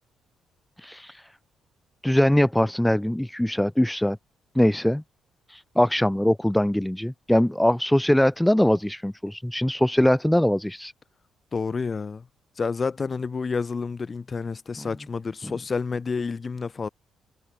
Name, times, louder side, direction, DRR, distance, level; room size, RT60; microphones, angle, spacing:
voice 1, 0.8-1.2 2.0-4.2 4.6-5.0 5.5-10.9, left 1 dB, 5° left, 1.8 m, -22 dB
voice 2, 11.5-12.3 12.6-16.9, left 4 dB, 35° left, 6.5 m, -29 dB
cardioid pair, 90°, 0 cm